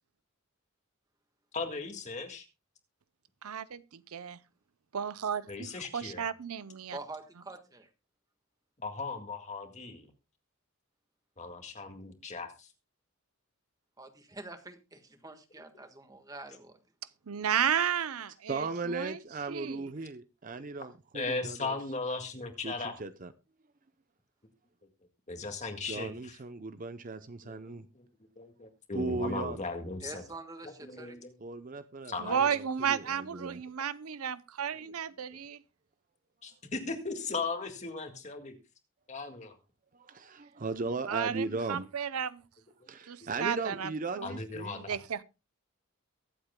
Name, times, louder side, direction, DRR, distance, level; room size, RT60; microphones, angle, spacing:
voice 1, 1.5-2.5 5.5-6.3 8.8-10.1 11.4-12.7 21.1-22.9 25.3-26.4 27.4-28.1 28.4-30.2 30.6-31.3 32.1-32.4 33.3-33.5 34.7-34.9 35.3-35.4 36.4-38.5 39.1-39.6 43.2-43.3 44.2-45.0, left 3 dB, 35° left, 1.9 m, -38 dB
voice 2, 3.4-4.4 4.9-5.5 5.9-7.0 17.3-19.2 19.5-19.8 32.2-35.6 41.1-42.4 43.1-43.9 44.2-44.3 44.9-45.2, right 8 dB, 90° right, 0.6 m, -33 dB
voice 3, 6.9-7.9 14.0-16.8 30.0-31.1, right 2 dB, 15° right, 1.4 m, -46 dB
voice 4, 18.5-21.7 22.6-23.3 25.9-27.8 28.9-29.6 31.4-33.6 39.9-41.9 42.9-44.9, right 3 dB, 40° right, 0.6 m, -37 dB
23.0 x 8.2 x 2.2 m
head